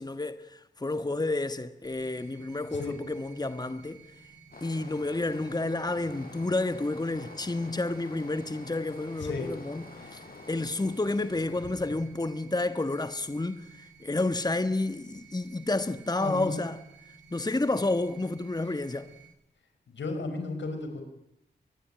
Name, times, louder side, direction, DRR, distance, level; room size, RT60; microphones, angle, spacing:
voice 1, 0.0-4.0 4.6-16.8 17.3-19.1, left 2 dB, 20° left, 1.5 m, -30 dB
sound 1, 1.8-19.3, right 5 dB, 75° right, 6.9 m, -54 dB
sound 2, 4.5-11.4, left 3 dB, 55° left, 7.0 m, -48 dB
voice 2, 10.0-10.4 16.2-16.6 19.9-21.0, left 3 dB, 90° left, 5.4 m, -34 dB
24.5 x 21.0 x 9.0 m
cardioid pair, 50°, 18 cm